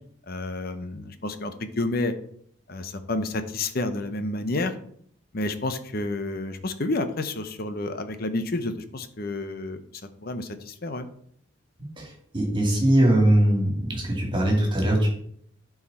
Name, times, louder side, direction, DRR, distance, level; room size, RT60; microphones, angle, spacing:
voice 1, 0.3-2.1 2.7-4.7 5.3-9.8 10.2-11.1, left 2 dB, 50° left, 10 dB, 0.8 m, -30 dB
voice 2, 12.0-15.1, right 1 dB, 25° right, 0 dB, 2.5 m, -21 dB
12.0 x 4.8 x 4.3 m, 0.64 s
head